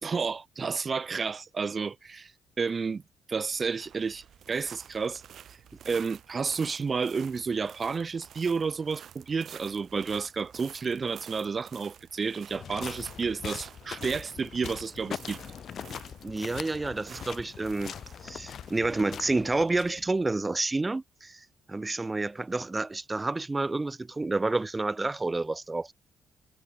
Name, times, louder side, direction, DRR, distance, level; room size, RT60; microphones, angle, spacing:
voice 1, 0.0-2.3 2.6-3.0 3.3-5.2 5.8-15.4, right 5 dB, 35° right, 1.0 m, -31 dB
sound 1, 3.5-20.4, right 9 dB, 65° right, 3.8 m, -51 dB
sound 2, 12.5-20.2, left 8 dB, 60° left, 0.9 m, -42 dB
voice 2, 16.2-17.9 18.2-25.9, right 3 dB, 20° right, 0.7 m, -29 dB
cardioid pair, 90°, 0 cm